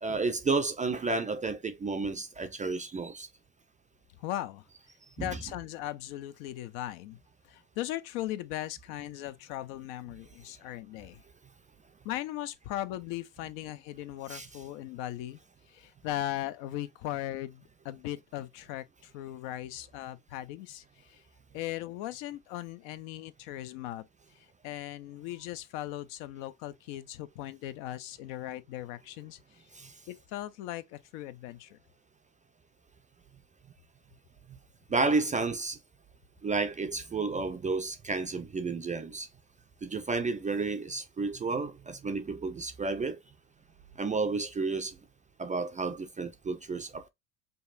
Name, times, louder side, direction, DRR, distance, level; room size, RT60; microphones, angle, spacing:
voice 1, 0.0-3.3 5.2-5.3 14.3-14.5 29.7-29.9 34.9-35.8 36.4-39.3 39.8-43.2 44.0-45.0 45.4-47.1, right 3 dB, 20° right, 0.3 m, -31 dB
voice 2, 4.2-4.6 5.2-7.2 7.4-11.2 12.0-15.4 15.7-21.2 21.5-24.1 24.3-29.6 30.1-31.8, left 14 dB, 70° left, 0.6 m, -38 dB
5.3 x 2.3 x 2.5 m
hypercardioid pair, 75°, 46 cm